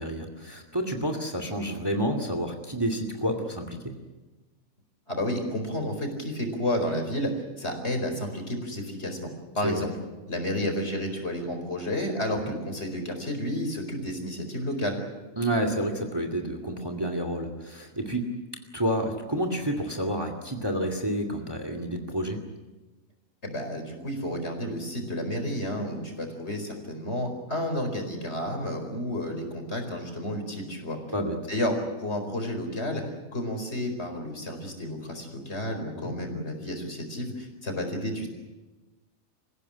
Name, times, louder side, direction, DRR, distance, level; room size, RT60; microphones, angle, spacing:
voice 1, 0.0-3.9 9.6-9.8 12.3-12.5 15.4-18.4 18.7-22.4 31.1-31.4 36.0-36.1, right 1 dB, 15° right, 6 dB, 2.4 m, -29 dB
voice 2, 5.1-7.3 7.6-9.9 10.3-15.0 23.4-31.0 31.5-33.0 33.3-38.3, left 1 dB, 50° left, 4 dB, 4.9 m, -31 dB
26.5 x 16.5 x 10.0 m, 1.2 s
omnidirectional pair, 1.4 m